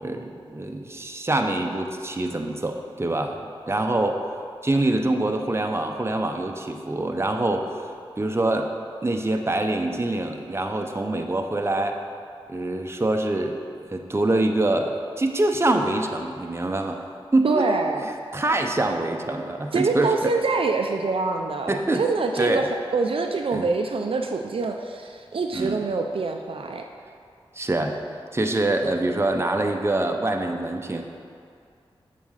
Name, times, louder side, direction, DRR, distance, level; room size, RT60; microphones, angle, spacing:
voice 1, 0.0-4.2 4.6-7.9 8.2-8.7 9.0-12.0 12.5-13.6 13.9-17.0 17.3-17.7 18.0-20.3 21.7-22.0 22.4-22.7 23.5-23.7 25.5-25.8 27.5-28.0 28.3-31.0, right 2 dB, 25° right, 4 dB, 0.7 m, -25 dB
voice 2, 17.4-18.0 19.7-26.8, right 4 dB, 65° right, 4 dB, 0.5 m, -25 dB
7.1 x 4.2 x 6.5 m, 2.3 s
cardioid pair, 45°, 10 cm